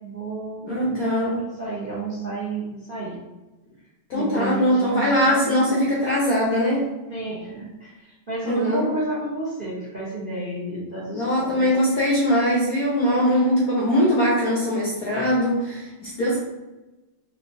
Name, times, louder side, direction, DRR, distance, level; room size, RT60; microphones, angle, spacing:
voice 1, 0.0-3.1 4.1-5.9 7.1-11.7 13.2-13.5, right 2 dB, 40° right, -7 dB, 0.7 m, -31 dB
voice 2, 0.7-1.4 4.1-6.9 8.4-8.9 11.1-16.4, equal, 65° left, -5 dB, 0.9 m, -21 dB
4.8 x 2.8 x 2.6 m, 1.1 s
omnidirectional pair, 2.3 m